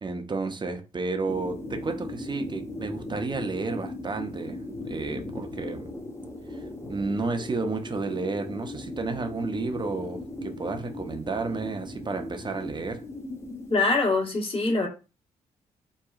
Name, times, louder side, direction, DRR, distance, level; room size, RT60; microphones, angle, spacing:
voice 1, 0.0-5.9 6.5-6.6 6.9-13.0, right 3 dB, 30° right, 0.6 m, -31 dB
sound 1, 1.3-13.8, left 1 dB, 15° left, 0.7 m, -38 dB
voice 2, 13.7-14.9, left 3 dB, 35° left, 1.3 m, -23 dB
2.8 x 2.3 x 2.4 m
hypercardioid pair, 45°, 16 cm